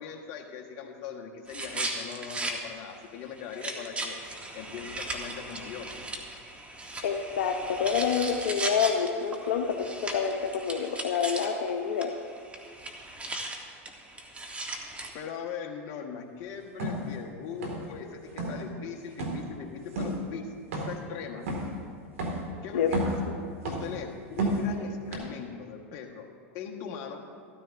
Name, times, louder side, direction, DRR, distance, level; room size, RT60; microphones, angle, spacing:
voice 1, 0.0-4.2 4.5-5.9 14.5-21.5 22.6-23.1 23.6-26.3 26.5-27.2, left 7 dB, 50° left, 2 dB, 1.4 m, -40 dB
sound 1, 1.5-2.6 2.9-3.0 3.4-11.7 12.0-12.1 12.3-15.1, right 2 dB, 15° right, 1.3 m, -37 dB
voice 2, 7.0-12.1 22.7-22.9, left 7 dB, 80° left, 2 dB, 0.7 m, -28 dB
sound 2, 16.8-17.0 17.6-18.0 18.3-18.6 19.2-19.4 19.9-20.2 20.7-21.1 21.5-21.7 22.2-22.4 22.8-23.3 23.6-24.0 24.4-24.7 25.1-25.2, right 2 dB, 85° right, 2.0 m, -31 dB
14.0 x 13.0 x 2.6 m, 2.2 s
hypercardioid pair, 110°, 7 cm